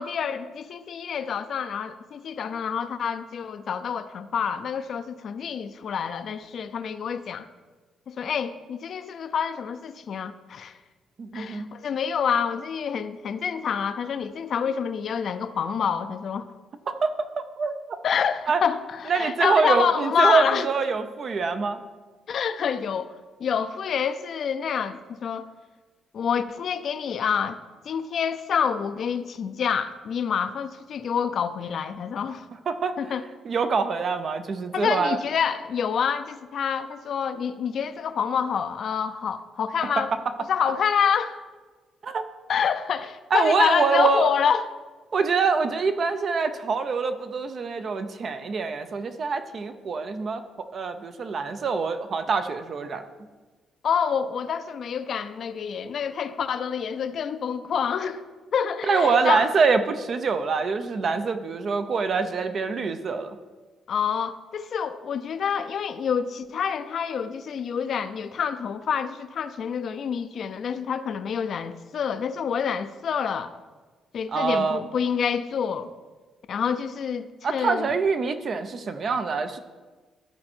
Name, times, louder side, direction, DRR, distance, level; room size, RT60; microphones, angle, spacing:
voice 1, 0.0-7.5 8.1-10.8 11.3-16.5 18.0-20.7 22.3-23.1 23.4-25.5 26.1-27.6 27.8-32.5 33.0-33.2 34.7-40.1 40.5-41.4 42.5-44.7 53.8-58.2 58.5-59.5 63.9-73.5 74.1-75.9 76.5-77.9, left 7 dB, 60° left, 0.5 m, -27 dB
voice 2, 11.2-11.7 16.9-18.0 18.5-18.6 19.1-21.8 32.7-33.0 33.4-35.2 42.0-42.2 43.3-44.3 45.1-50.4 50.7-53.0 58.9-63.4 74.3-74.8 77.4-79.6, right 5 dB, 50° right, 0.6 m, -25 dB
12.5 x 4.3 x 4.4 m
cardioid pair, 90°, 0 cm